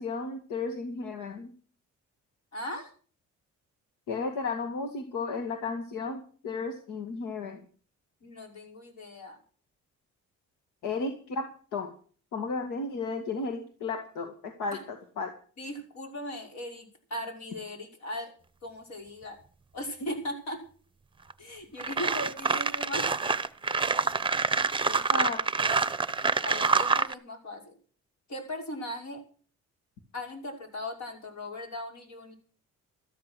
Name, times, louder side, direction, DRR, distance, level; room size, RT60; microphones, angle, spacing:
voice 1, 0.0-1.5 4.1-7.6 10.8-11.9 12.3-15.3 25.1-25.4, left 4 dB, 90° left, 5 dB, 2.2 m, -34 dB
voice 2, 2.5-2.9 8.2-9.4 14.7-14.8 15.6-18.3 18.6-19.4 19.7-20.6 21.4-23.1 24.8-25.3 26.4-27.7 28.3-29.2 30.1-32.4, left 1 dB, 65° left, 2 dB, 5.8 m, -38 dB
sound 1, 21.3-21.4 21.8-27.1, right 4 dB, 15° right, 0.8 m, -26 dB
13.5 x 13.5 x 6.2 m, 0.43 s
cardioid pair, 90°, 30 cm